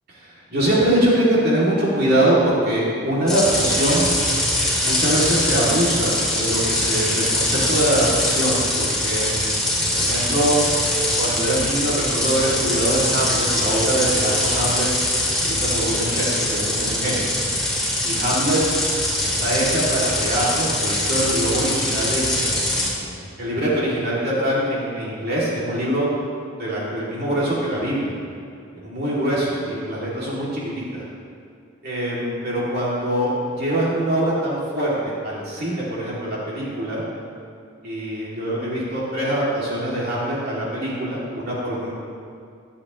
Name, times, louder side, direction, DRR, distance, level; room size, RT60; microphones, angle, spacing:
voice 1, 0.1-4.1 4.8-9.3 9.6-10.6 11.2-14.9 15.4-17.3 17.7-18.6 19.2-26.1 26.6-28.1 28.8-31.0 31.8-33.3 33.6-37.0 37.8-41.9, right 1 dB, 50° right, -7 dB, 2.8 m, -23 dB
sound 1, 3.3-22.9, left 1 dB, 5° left, 2.7 m, -22 dB
22.5 x 8.5 x 3.2 m, 2.3 s
head